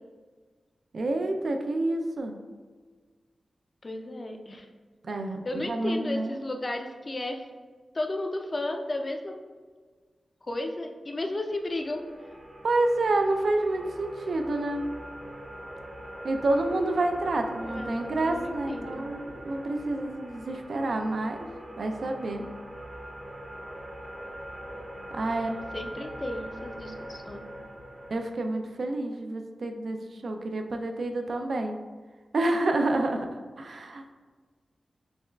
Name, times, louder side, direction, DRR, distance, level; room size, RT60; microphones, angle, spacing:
voice 1, 0.9-2.4 5.0-6.3 12.6-14.8 16.2-19.2 19.4-21.4 21.8-22.5 25.1-25.5 26.0-26.1 28.1-31.8 32.3-33.3 33.6-34.1, right 2 dB, 65° right, 4 dB, 0.3 m, -28 dB
voice 2, 3.8-4.7 5.4-7.4 7.9-9.3 10.4-12.0 17.6-19.1 20.9-21.0 25.3-27.5, left 1 dB, 35° left, 3 dB, 0.4 m, -34 dB
sound 1, 11.3-28.1, right 1 dB, 20° right, 0.6 m, -42 dB
6.3 x 2.3 x 2.2 m, 1.5 s
wide cardioid pair, 115°, 0 cm